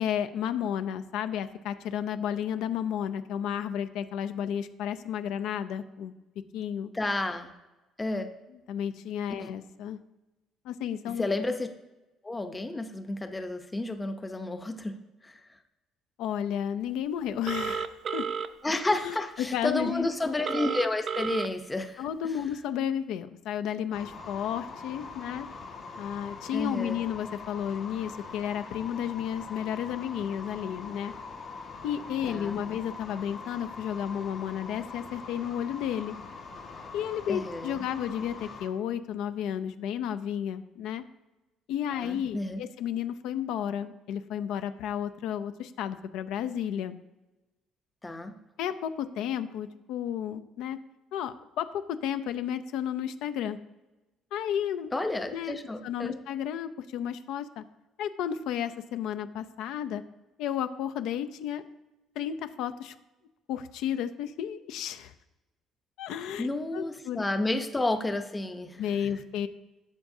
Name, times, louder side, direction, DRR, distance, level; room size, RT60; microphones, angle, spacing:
voice 1, 0.0-6.1 6.5-6.9 8.7-10.0 10.6-11.3 16.2-18.3 19.0-20.1 22.0-25.5 26.0-31.1 31.8-36.2 36.9-41.0 41.7-47.0 48.6-50.8 51.1-53.6 54.3-55.0 55.3-55.6 55.8-57.6 58.0-60.0 60.4-61.6 62.2-62.9 63.5-65.1 66.0-66.5 66.7-67.3 68.8-69.5, left 9 dB, 80° left, 10 dB, 0.5 m, -32 dB
voice 2, 6.9-7.5 8.0-8.3 9.4-9.5 11.2-11.7 12.2-15.5 18.6-22.0 26.5-27.0 32.3-32.6 37.3-37.8 41.9-42.6 48.0-48.4 54.9-56.2 66.4-68.8, left 2 dB, 10° left, 7 dB, 0.6 m, -31 dB
Telephone, 17.5-18.5 20.4-21.5, right 7 dB, 40° right, 0.5 m, -31 dB
sound 1, 23.9-38.7, left 4 dB, 40° left, 1.6 m, -43 dB
12.5 x 7.7 x 2.7 m, 1.0 s
cardioid pair, 155°, 0 cm